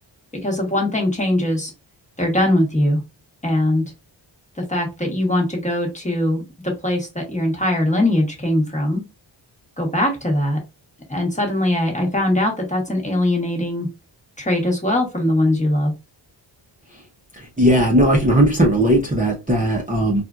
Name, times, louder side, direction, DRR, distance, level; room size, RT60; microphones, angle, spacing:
voice 1, 0.4-1.7 2.2-3.0 3.4-3.8 4.6-9.0 9.8-10.6 11.1-13.9 14.4-15.9, left 1 dB, 15° left, 1.2 m, -21 dB
voice 2, 17.6-20.2, right 1 dB, 15° right, 0.8 m, -17 dB
4.2 x 2.5 x 2.3 m
wide cardioid pair, 110°, 47 cm